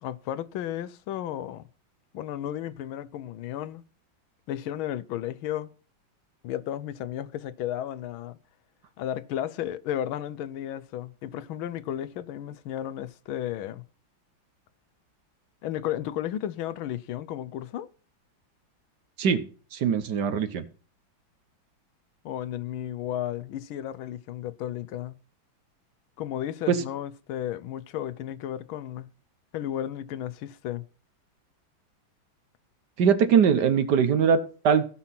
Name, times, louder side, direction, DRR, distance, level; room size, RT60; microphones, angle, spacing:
voice 1, 0.0-1.6 2.1-3.8 4.5-5.7 6.4-8.4 9.0-13.8 15.6-17.9 22.2-25.2 26.2-29.1 29.5-30.8, left 11 dB, 90° left, 1.5 m, -33 dB
voice 2, 19.7-20.6 26.7-26.8 33.0-34.9, right 7 dB, 60° right, 1.5 m, -22 dB
15.5 x 5.9 x 5.7 m
omnidirectional pair, 2.2 m